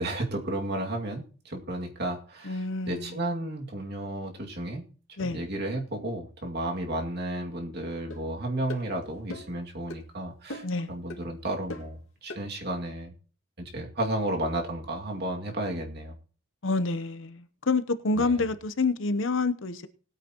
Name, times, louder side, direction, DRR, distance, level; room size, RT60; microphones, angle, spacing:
voice 1, 0.0-4.8 5.2-13.1 13.6-16.1 18.1-18.5, right 1 dB, 50° right, 1 dB, 2.3 m, -33 dB
voice 2, 2.4-3.2 5.2-5.4 10.6-10.9 16.6-19.9, left 3 dB, 65° left, 12 dB, 0.8 m, -28 dB
sound 1, 8.1-8.2 8.7-8.9 9.3-9.6 9.9-10.0 10.5-10.8 11.1-11.2 11.7-11.9 12.3-12.4, left 1 dB, 90° left, 2.1 m, -39 dB
20.0 x 9.0 x 3.0 m, 0.40 s
head